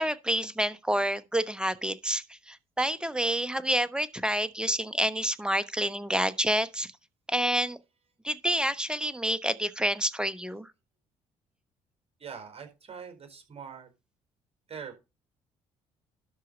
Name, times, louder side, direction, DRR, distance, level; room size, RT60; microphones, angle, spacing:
voice 1, 0.0-6.9 7.3-7.8 8.2-10.7, equal, 5° right, 1.3 m, -28 dB
voice 2, 12.2-13.9 14.7-15.0, right 6 dB, 40° right, 4.5 m, -43 dB
12.5 x 4.6 x 5.4 m
hypercardioid pair, 55°, 16 cm